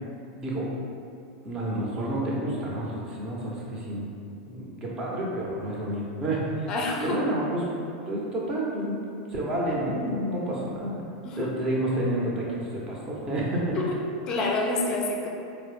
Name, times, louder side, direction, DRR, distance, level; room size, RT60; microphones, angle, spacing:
voice 1, 1.4-4.1 4.5-6.7 7.0-7.7 8.1-9.0 9.3-11.0 11.4-13.8, right 1 dB, 25° right, -4 dB, 0.7 m, -29 dB
voice 2, 6.7-7.2 11.2-11.5 13.8-14.0 14.3-15.3, left 2 dB, 30° left, 0 dB, 0.4 m, -27 dB
4.3 x 2.0 x 3.2 m, 2.5 s
figure-of-eight pair, 85°, 2 cm